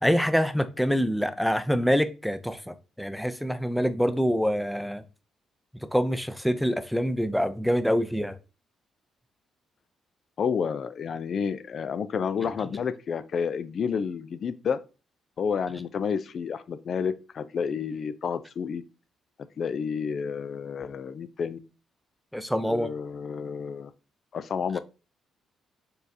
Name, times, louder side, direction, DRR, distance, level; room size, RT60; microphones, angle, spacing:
voice 1, 0.0-5.0 5.7-8.4 22.3-22.9, equal, ahead, 0.5 m, -25 dB
voice 2, 10.4-14.8 15.4-18.8 19.6-21.6 22.7-23.9 24.3-24.8, left 6 dB, 55° left, 0.4 m, -30 dB
4.3 x 3.3 x 2.7 m
hypercardioid pair, 50°, 0 cm